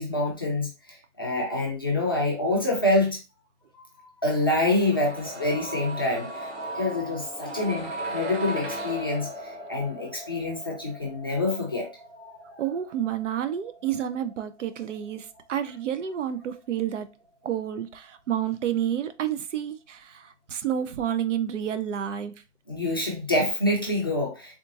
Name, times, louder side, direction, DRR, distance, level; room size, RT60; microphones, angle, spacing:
voice 1, 0.0-3.2 4.2-11.9 12.2-12.4 22.7-24.6, left 2 dB, 20° left, 0.4 m, -26 dB
sound 1, 4.7-16.5 16.8-16.9, right 1 dB, 65° right, 1.7 m, -38 dB
voice 2, 12.6-17.1 17.4-22.3, right 10 dB, 80° right, 0.6 m, -29 dB
3.6 x 2.8 x 2.5 m
hypercardioid pair, 170°, 36 cm